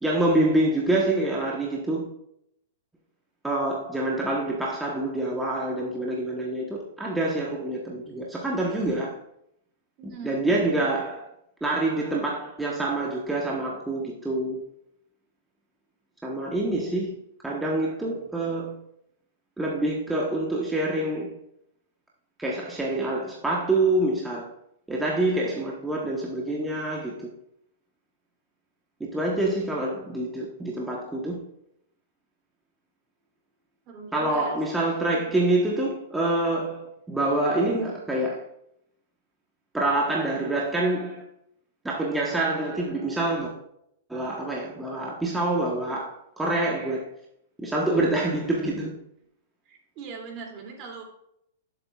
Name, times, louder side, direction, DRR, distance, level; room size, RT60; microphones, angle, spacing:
voice 1, 0.0-2.1 3.4-9.2 10.0-11.3 11.6-14.6 16.2-17.1 17.4-18.7 19.6-21.3 22.4-24.5 24.9-27.3 29.0-31.4 34.1-38.4 39.7-41.2 41.8-43.5 44.1-47.1 47.6-48.9, right 2 dB, 10° right, 1.1 m, -26 dB
voice 2, 10.0-10.8 33.9-34.6 49.7-51.0, right 4 dB, 40° right, 2.6 m, -40 dB
11.0 x 7.2 x 2.4 m
hypercardioid pair, 120°, 0 cm